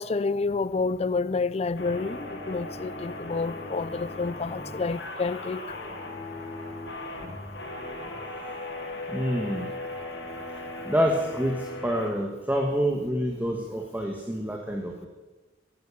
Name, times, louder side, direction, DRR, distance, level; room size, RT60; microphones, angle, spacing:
voice 1, 0.0-5.8, left 4 dB, 35° left, 0.4 m, -29 dB
sound 1, 1.8-12.1, left 2 dB, 70° left, 5.1 m, -37 dB
voice 2, 9.1-9.7 10.9-15.1, equal, 10° right, 1.3 m, -27 dB
14.5 x 12.0 x 7.0 m
head